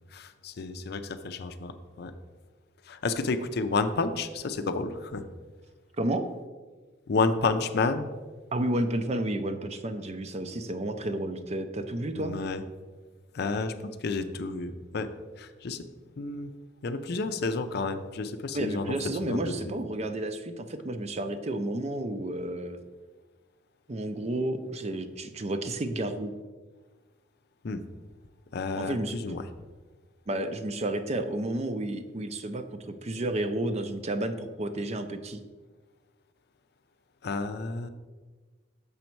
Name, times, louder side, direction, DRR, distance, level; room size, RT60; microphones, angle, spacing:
voice 1, 0.1-2.1 2.9-5.2 7.1-8.1 12.2-12.6 13.3-15.1 15.4-15.8 16.2-16.5 16.8-19.0 19.2-19.7 27.6-27.8 28.5-29.4 37.2-37.9, left 3 dB, 60° left, 9 dB, 0.5 m, -30 dB
voice 2, 8.5-12.3 18.5-22.8 23.9-26.3 28.8-29.1 30.3-32.6 33.0-35.4, right 1 dB, 35° right, 9 dB, 0.5 m, -31 dB
7.0 x 5.2 x 4.5 m, 1.3 s
head